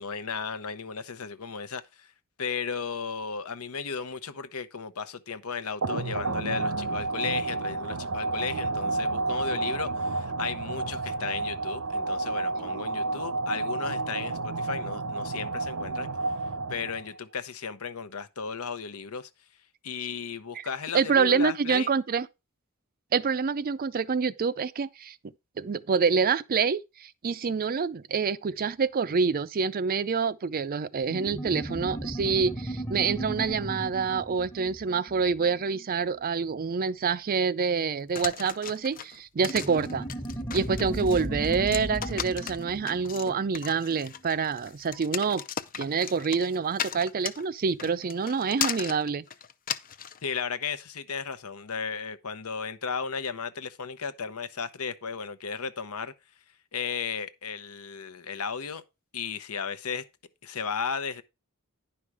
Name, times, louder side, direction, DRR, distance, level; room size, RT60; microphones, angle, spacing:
voice 1, 0.0-2.1 2.4-16.1 16.7-19.3 19.8-21.9 50.2-56.1 56.7-58.8 59.1-60.0 60.4-61.2, left 6 dB, 75° left, 0.8 m, -35 dB
sound 1, 5.8-17.2, right 3 dB, 70° right, 0.7 m, -30 dB
voice 2, 20.9-22.3 23.1-25.2 25.6-40.0 40.5-45.4 45.8-49.2, right 5 dB, 40° right, 0.4 m, -27 dB
sound 2, 31.1-36.0 39.4-44.3, right 1 dB, 15° left, 1.0 m, -36 dB
sound 3, 38.2-50.2, left 8 dB, 40° left, 0.6 m, -36 dB
10.0 x 5.5 x 4.7 m
head